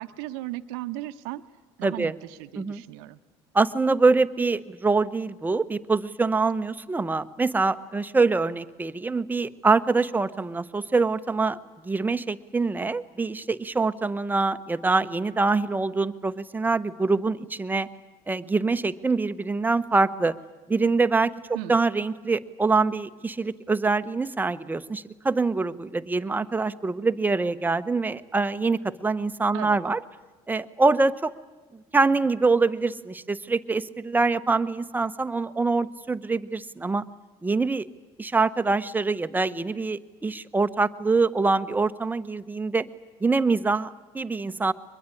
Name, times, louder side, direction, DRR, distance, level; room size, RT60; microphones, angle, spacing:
voice 1, 0.0-1.4 1.8-3.2 21.5-21.8 29.5-29.8, right 15 dB, 85° right, 10 dB, 1.0 m, -36 dB
voice 2, 1.8-2.1 2.6-2.8 3.5-11.6 11.8-17.9 18.3-20.4 20.7-21.3 21.7-30.0 30.5-31.3 31.9-37.0 37.4-37.9 38.2-42.9 43.2-44.7, right 3 dB, 15° right, 12 dB, 0.9 m, -24 dB
22.5 x 21.5 x 9.9 m, 1.2 s
supercardioid pair, 95°, 13 cm